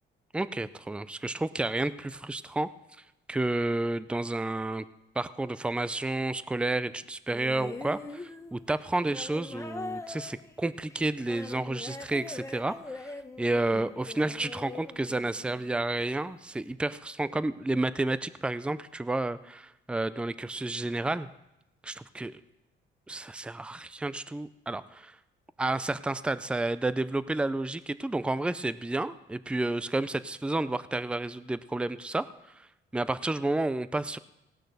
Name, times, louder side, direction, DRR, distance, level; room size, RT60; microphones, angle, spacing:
voice 1, 0.3-2.7 3.3-4.9 5.2-21.3 21.8-22.4 23.1-25.2 25.6-34.2, right 2 dB, 5° right, 15 dB, 0.4 m, -31 dB
sound 1, 7.3-15.7 16.7-16.8, left 2 dB, 15° left, 1.0 m, -42 dB
17.5 x 6.4 x 6.6 m, 0.90 s
cardioid pair, 90°, 20 cm